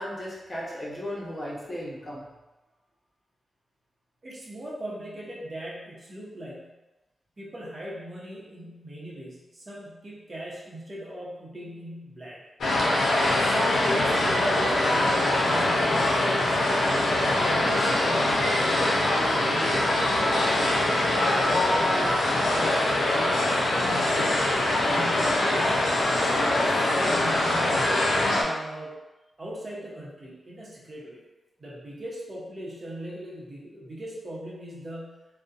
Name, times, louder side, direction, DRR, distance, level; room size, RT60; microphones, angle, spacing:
voice 1, 0.0-2.2, equal, 40° left, -6 dB, 0.9 m, -35 dB
voice 2, 4.2-6.7 7.4-12.4 12.8-13.1 13.4-20.0 20.5-23.9 24.9-25.8 26.1-28.9 29.4-31.2 31.6-35.2, equal, 45° right, -5 dB, 0.8 m, -39 dB
sound 1, 12.6-28.4, left 1 dB, 75° left, 0.5 m, -23 dB
2.5 x 2.1 x 2.5 m, 1.1 s
cardioid pair, 45°, 0 cm